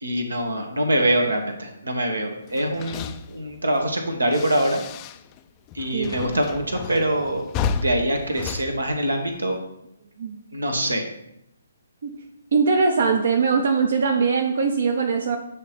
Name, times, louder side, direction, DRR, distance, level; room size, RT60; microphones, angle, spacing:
voice 1, 0.0-4.8 5.7-7.5 7.8-9.6 10.5-11.0, right 1 dB, 80° right, 4 dB, 1.3 m, -24 dB
sound 1, 2.5-5.4 5.7-9.6, left 5 dB, 25° left, 0.4 m, -33 dB
voice 2, 12.5-15.4, right 5 dB, 55° right, 4 dB, 0.8 m, -21 dB
8.2 x 3.0 x 5.1 m, 0.82 s
figure-of-eight pair, 135°, 0 cm